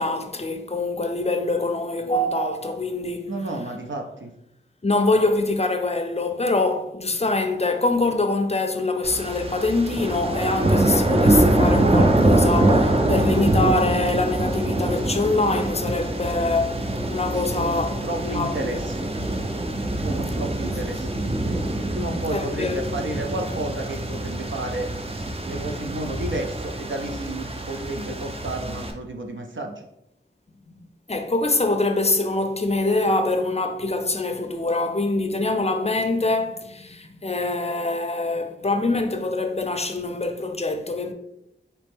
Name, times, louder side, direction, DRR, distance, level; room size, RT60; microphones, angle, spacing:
voice 1, 0.0-3.3 4.8-18.8 20.6-20.7 21.0-21.1 22.3-23.3 31.1-41.1, left 2 dB, 35° left, 0.5 m, -24 dB
voice 2, 3.3-4.3 17.4-19.1 19.9-21.5 21.9-24.9 25.4-29.8, right 1 dB, 75° right, 0.6 m, -32 dB
sound 1, 9.0-28.9, right 1 dB, 30° right, 0.6 m, -24 dB
4.2 x 3.0 x 3.5 m
wide cardioid pair, 60°, 20 cm